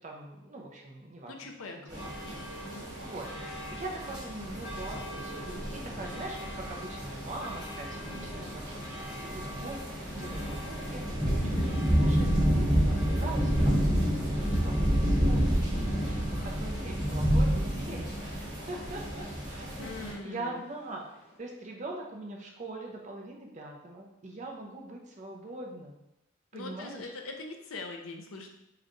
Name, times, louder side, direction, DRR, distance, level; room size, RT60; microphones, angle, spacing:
voice 1, 0.0-1.4 1.8-2.4 3.0-3.3 3.7-14.8 15.1-21.0 21.4-26.0 26.5-27.1, right 2 dB, 35° right, 0 dB, 0.5 m, -42 dB
voice 2, 1.3-2.9 11.4-11.7 19.8-20.6 26.5-28.5, left 3 dB, 85° left, 3 dB, 0.6 m, -42 dB
sound 1, 1.9-20.1, equal, 20° right, 1.1 m, -30 dB
sound 2, 2.0-21.4, equal, 35° left, 0.7 m, -48 dB
4.8 x 2.3 x 3.0 m, 0.86 s
head